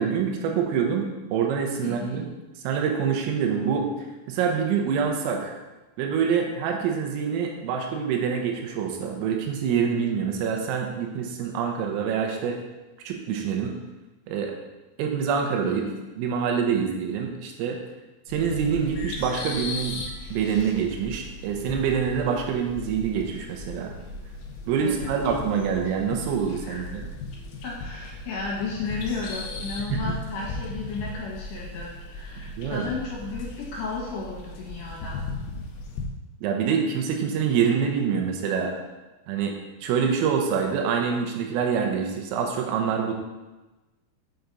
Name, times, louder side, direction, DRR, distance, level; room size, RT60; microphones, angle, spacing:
voice 1, 0.0-2.3 2.7-3.9 4.3-5.5 6.0-12.6 13.1-13.7 14.3-14.5 15.0-15.8 16.2-17.8 18.3-20.0 20.3-23.9 24.7-27.1 29.9-30.2 32.6-32.9 36.4-38.8 39.3-43.1, right 7 dB, 85° right, 2 dB, 3.5 m, -26 dB
voice 2, 1.8-2.2 15.6-16.0 24.8-25.1 26.6-27.0 27.6-35.2, left 4 dB, 70° left, -4 dB, 2.8 m, -34 dB
sound 1, 18.3-36.0, left 3 dB, 90° left, 2.2 m, -37 dB
6.8 x 5.9 x 3.9 m, 1.1 s
omnidirectional pair, 5.9 m